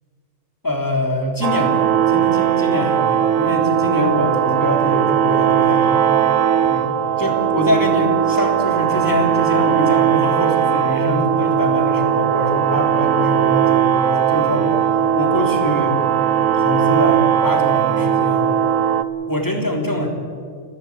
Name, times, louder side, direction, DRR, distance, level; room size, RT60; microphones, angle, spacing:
voice 1, 0.6-6.0 6.6-14.7 15.1-16.0 16.5-18.5 19.3-20.1, left 1 dB, 15° left, 2 dB, 3.4 m, -23 dB
sound 1, 1.4-19.0, right 9 dB, 80° right, 1.3 m, -18 dB
29.5 x 12.5 x 8.6 m, 2.2 s
omnidirectional pair, 1.3 m